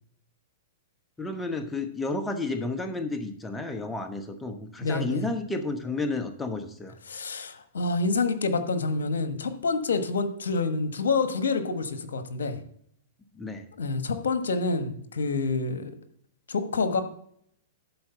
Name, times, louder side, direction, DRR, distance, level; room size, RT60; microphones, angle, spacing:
voice 1, 1.2-6.9 13.3-13.6, left 3 dB, 10° left, 6 dB, 1.2 m, -31 dB
voice 2, 4.8-5.3 7.1-12.6 13.8-15.9 16.5-17.0, left 3 dB, 80° left, 9 dB, 1.2 m, -27 dB
11.5 x 4.4 x 6.7 m, 0.68 s
hypercardioid pair, 120°, 0 cm